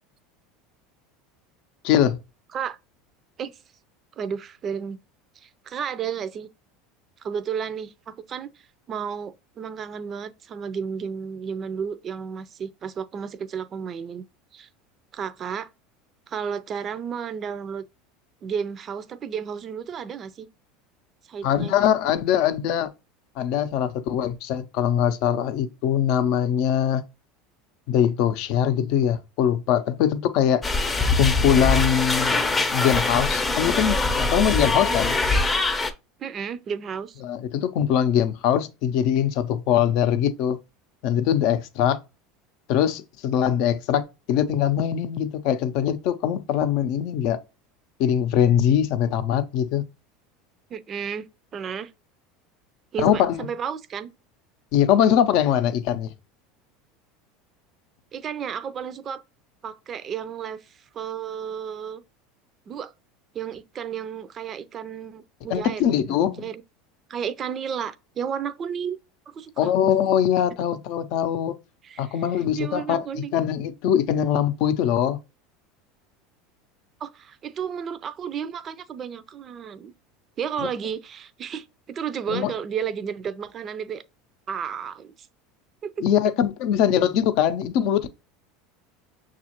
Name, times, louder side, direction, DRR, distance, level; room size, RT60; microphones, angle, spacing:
voice 1, 1.8-2.2 21.4-22.9 23.4-27.0 27.9-30.6 31.2-32.4 32.7-35.1 37.2-40.6 41.0-42.0 42.7-47.4 48.0-49.8 53.0-53.4 54.7-56.1 65.5-66.5 69.6-71.5 72.0-75.2 82.3-82.5 86.0-88.1, left 9 dB, 65° left, 0.6 m, -22 dB
voice 2, 4.2-5.0 5.4-6.5 7.2-14.2 14.5-14.7 15.1-15.7 16.3-17.8 18.4-20.5 21.3-21.8 34.6-35.0 36.2-37.2 50.7-51.2 51.5-51.9 52.9-54.1 58.1-59.2 59.6-62.0 62.7-62.9 63.3-66.6 67.1-69.0 69.3-69.7 71.8-72.2 72.5-73.3 77.0-79.9 80.4-84.0 84.5-85.1 85.8-86.0, right 7 dB, 40° right, 0.4 m, -32 dB
sound 1, 30.6-35.9, left 3 dB, 20° left, 0.6 m, -23 dB
6.2 x 2.4 x 2.9 m
hypercardioid pair, 95°, 0 cm